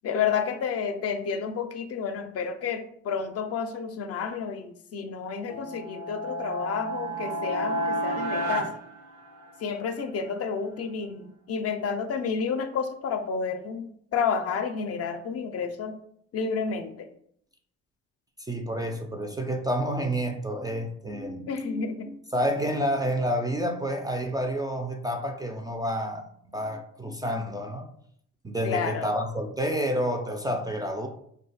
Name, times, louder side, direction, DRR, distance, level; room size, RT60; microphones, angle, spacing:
voice 1, 0.0-8.7 9.6-16.0 16.3-17.1 21.5-22.1 28.6-29.1, left 6 dB, 55° left, 7 dB, 0.5 m, -30 dB
sound 1, 5.4-9.8, right 1 dB, 90° right, 0.8 m, -31 dB
voice 2, 18.4-26.3 26.5-27.9 28.4-31.1, equal, 15° right, 4 dB, 0.3 m, -29 dB
2.7 x 2.2 x 4.0 m, 0.68 s
cardioid pair, 90°, 30 cm